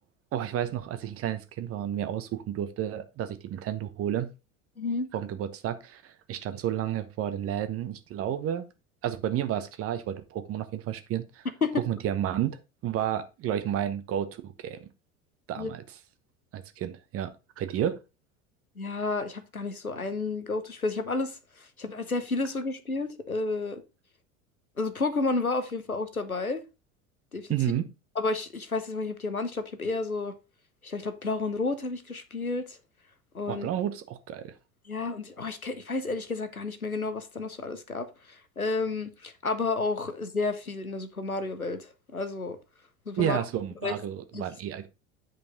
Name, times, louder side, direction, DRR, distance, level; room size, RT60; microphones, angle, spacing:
voice 1, 0.3-4.3 5.1-8.6 9.0-11.4 11.8-14.9 15.5-15.8 16.5-17.3 17.6-18.0 27.5-27.9 33.5-34.5 43.2-44.9, right 10 dB, 35° right, 1.1 m, -31 dB
voice 2, 4.8-5.1 11.6-11.8 15.6-15.7 18.8-21.4 21.8-23.8 24.8-26.6 27.3-27.5 28.2-30.3 30.8-32.8 33.3-33.7 34.9-38.1 38.6-42.6 43.1-43.4 43.8-43.9 44.3-44.4, left 3 dB, 90° left, 0.9 m, -31 dB
9.3 x 5.3 x 4.0 m
figure-of-eight pair, 75°, 41 cm